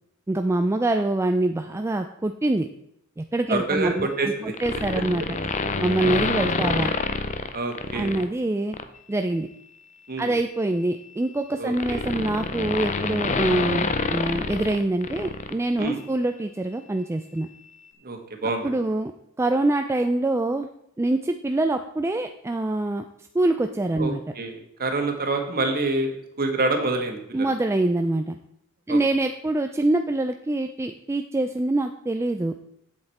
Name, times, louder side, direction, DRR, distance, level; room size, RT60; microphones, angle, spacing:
voice 1, 0.3-2.7 3.2-5.2 5.8-6.9 7.9-8.8 9.1-9.5 10.2-17.5 18.6-19.1 19.4-20.7 21.0-23.0 23.3-24.2 27.3-28.4 28.9-32.5, right 2 dB, 10° right, 6 dB, 0.3 m, -25 dB
voice 2, 3.5-4.5 7.5-8.2 10.1-10.3 11.6-12.0 15.8-16.0 18.0-18.7 24.0-27.5 28.9-29.0, right 2 dB, 45° right, 4 dB, 1.4 m, -27 dB
sound 1, 4.5-8.2 8.7-9.0 10.2-15.5 15.8-15.9, left 3 dB, 35° left, 0.6 m, -28 dB
8.0 x 7.7 x 4.2 m, 0.77 s
head